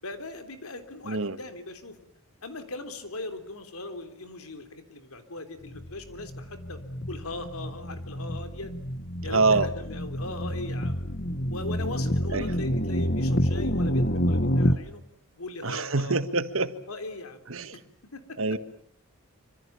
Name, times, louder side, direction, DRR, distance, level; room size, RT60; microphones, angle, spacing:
voice 1, 0.0-2.0 2.4-6.8 7.1-8.7 9.2-11.1 11.5-15.0 15.3-16.3 16.9-17.4 17.7-17.8 18.1-18.4, left 2 dB, 90° left, 8 dB, 3.5 m, -39 dB
sound 1, 5.7-14.8, equal, 50° left, 1.2 m, -28 dB
voice 2, 9.3-9.7 12.3-12.4 15.6-16.7 17.5-17.7 18.4-18.6, right 3 dB, 70° right, 11 dB, 1.6 m, -25 dB
26.5 x 26.0 x 7.2 m, 0.63 s
head